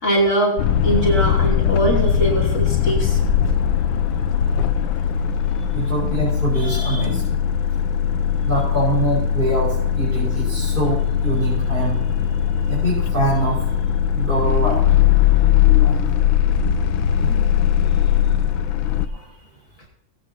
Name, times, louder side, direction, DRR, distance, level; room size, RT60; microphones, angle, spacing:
voice 1, 0.0-3.2, right 1 dB, 50° left, -4 dB, 3.6 m, -21 dB
sound 1, 0.6-19.1, left 9 dB, 80° left, 1.4 m, -19 dB
voice 2, 5.7-7.4 8.4-12.1 12.7-13.6 14.1-14.8 15.8-15.9 17.2-17.4 19.1-19.2, right 2 dB, 25° right, -8 dB, 5.4 m, -24 dB
19.0 x 9.2 x 2.9 m, 0.74 s
omnidirectional pair, 2.1 m